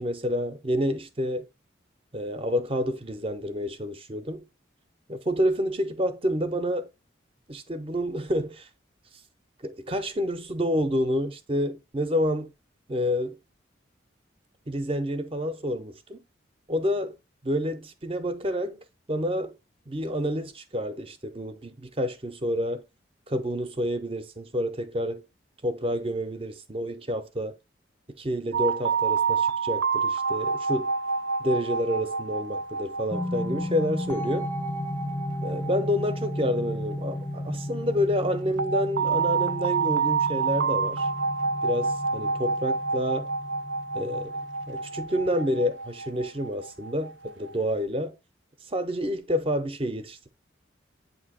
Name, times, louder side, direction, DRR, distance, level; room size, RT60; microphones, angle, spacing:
voice 1, 0.0-1.5 2.1-4.5 5.1-6.9 7.5-8.7 9.6-12.5 12.9-13.4 14.7-16.2 16.7-17.2 17.4-19.6 19.9-22.8 23.3-25.2 25.6-27.5 28.2-30.9 31.4-34.5 35.4-41.1 41.6-43.3 43.9-44.3 44.7-48.2 48.7-50.3, equal, 30° right, 0.6 m, -28 dB
sound 1, 28.5-37.3 38.6-47.7, right 5 dB, 75° right, 0.4 m, -29 dB
sound 2, 33.1-45.7, left 1 dB, 10° left, 0.4 m, -34 dB
8.2 x 2.8 x 4.1 m
head